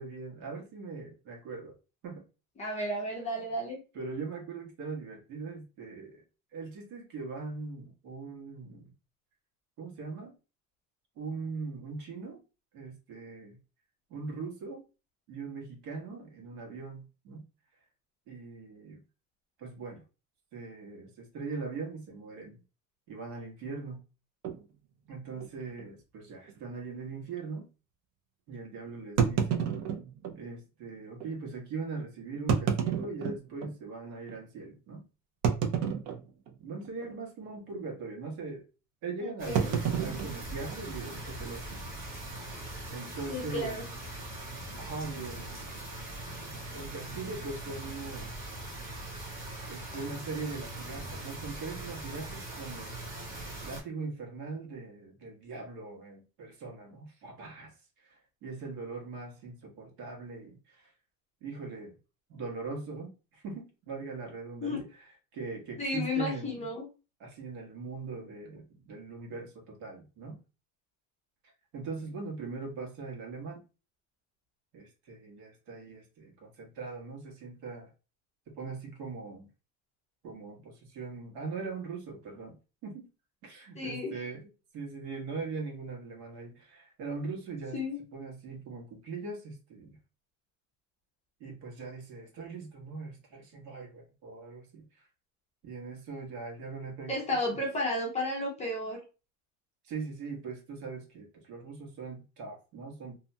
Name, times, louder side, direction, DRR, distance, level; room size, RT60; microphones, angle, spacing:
voice 1, 0.0-1.8 2.0-2.2 3.9-6.2 6.5-8.9 9.8-10.3 11.2-12.4 12.7-13.6 14.1-14.8 15.3-17.4 18.3-19.0 19.6-20.0 20.5-22.6 23.1-24.0 25.1-27.7 28.5-29.6 30.3-35.0 36.6-38.6 39.0-41.8 42.9-43.8 44.8-45.9 46.7-48.3 49.7-52.9 53.6-60.9 61.4-61.9 62.3-64.9 65.3-66.7 67.2-70.4 71.7-73.6 74.7-77.9 78.5-79.5 80.2-82.5 82.8-83.1 83.4-84.5 84.7-87.8 88.1-90.0 91.4-95.0 95.6-97.4 99.8-103.1, right 4 dB, 75° right, 1.3 m, -41 dB
voice 2, 2.6-3.8 39.2-39.8 43.3-43.8 64.6-64.8 65.8-66.9 83.7-84.1 87.7-88.0 97.1-99.0, left 1 dB, 20° left, 0.5 m, -33 dB
sound 1, 24.4-24.6 25.4-25.5 25.8-25.9 26.5-26.6 29.2-30.4 31.2-31.3 32.3-33.8 34.3-34.4 35.4-36.5 36.8-37.2 37.4-37.7 39.5-41.2, right 7 dB, 45° right, 0.4 m, -30 dB
sound 2, 39.4-53.8, right 2 dB, 25° right, 1.0 m, -41 dB
2.7 x 2.2 x 2.6 m
cardioid pair, 170°, 37 cm